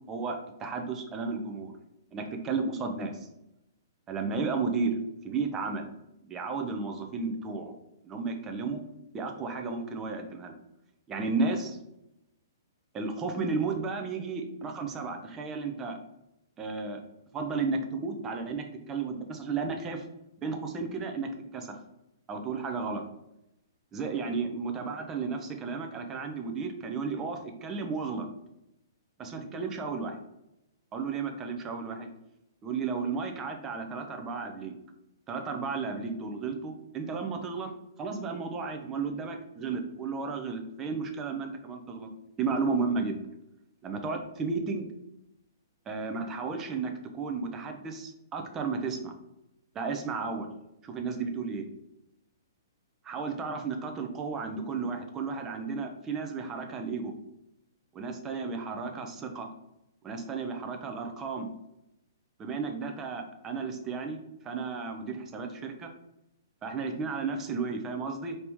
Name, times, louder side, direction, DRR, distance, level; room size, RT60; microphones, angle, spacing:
voice 1, 0.1-1.8 2.1-3.2 4.1-5.0 5.2-5.9 6.2-7.8 8.0-8.9 9.1-10.6 11.1-11.8 12.9-16.0 16.6-17.0 17.3-20.1 20.4-21.8 22.3-23.1 23.9-28.3 29.2-30.2 30.9-32.1 32.6-34.8 35.3-37.7 38.0-42.1 42.4-43.2 43.8-44.9 45.9-49.1 49.7-50.5 50.8-51.7 53.0-57.1 57.9-59.5 60.0-61.5 62.4-65.9 66.6-68.4, right 4 dB, 15° right, 4 dB, 0.4 m, -33 dB
4.5 x 2.7 x 3.4 m, 0.86 s
hypercardioid pair, 165°, 2 cm